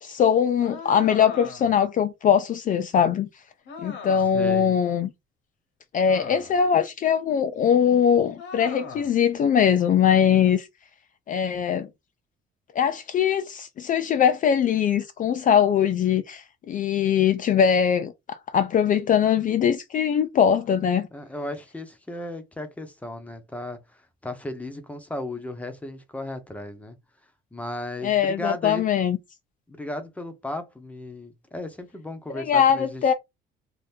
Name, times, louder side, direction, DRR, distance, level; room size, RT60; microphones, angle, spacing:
voice 1, 0.0-3.3 3.8-5.1 5.9-10.7 11.3-11.9 12.8-21.1 28.0-29.2 32.3-33.1, left 8 dB, 40° left, 0.4 m, -21 dB
sound 1, 0.6-1.8 3.6-4.5 6.0-6.7 8.4-9.2, left 5 dB, 65° left, 1.1 m, -40 dB
voice 2, 4.3-4.8 21.1-26.9 27.5-28.9 29.7-33.0, left 1 dB, 5° left, 0.7 m, -35 dB
2.8 x 2.5 x 3.4 m
cardioid pair, 125°, 21 cm